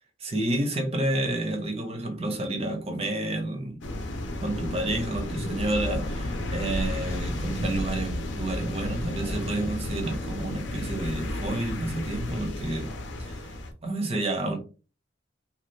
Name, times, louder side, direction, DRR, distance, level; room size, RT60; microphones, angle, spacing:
voice 1, 0.2-3.8 4.4-12.9 13.2-13.4 13.8-14.6, right 1 dB, 30° right, 0.6 m, -30 dB
sound 1, 3.8-13.7, left 1 dB, 65° left, 0.6 m, -32 dB
2.7 x 2.4 x 3.1 m
head